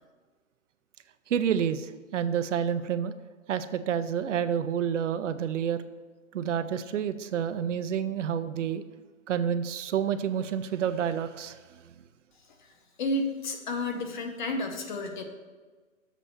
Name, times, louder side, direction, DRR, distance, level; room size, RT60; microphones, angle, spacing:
voice 1, 1.3-3.1 3.5-5.8 6.3-8.8 9.3-11.9, right 8 dB, 65° right, 11 dB, 0.6 m, -29 dB
voice 2, 12.5-15.2, left 2 dB, 35° left, 5 dB, 0.8 m, -32 dB
7.5 x 4.1 x 6.8 m, 1.4 s
hypercardioid pair, 165°, 41 cm